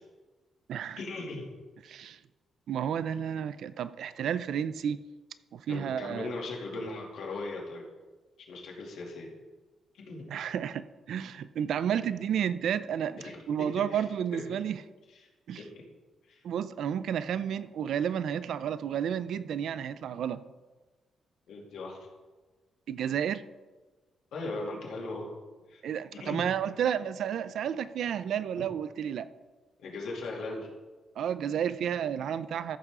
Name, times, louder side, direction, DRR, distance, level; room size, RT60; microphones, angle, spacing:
voice 1, 1.0-1.5 5.7-7.9 8.5-9.3 9.9-10.3 11.9-12.0 13.2-13.4 13.8-14.1 14.3-14.4 15.1-15.2 15.6-15.9 16.2-16.4 21.5-22.1 24.3-25.3 25.7-25.8 26.1-26.5 29.8-30.7, left 2 dB, 80° left, -2 dB, 2.5 m, -38 dB
voice 2, 1.9-2.2 2.7-5.0 5.5-6.3 10.3-13.2 13.5-14.8 15.5-15.6 16.4-20.4 22.9-23.4 25.8-29.3 31.2-32.8, right 8 dB, 70° right, 14 dB, 0.4 m, -31 dB
14.0 x 6.7 x 3.7 m, 1.3 s
cardioid pair, 160°, 0 cm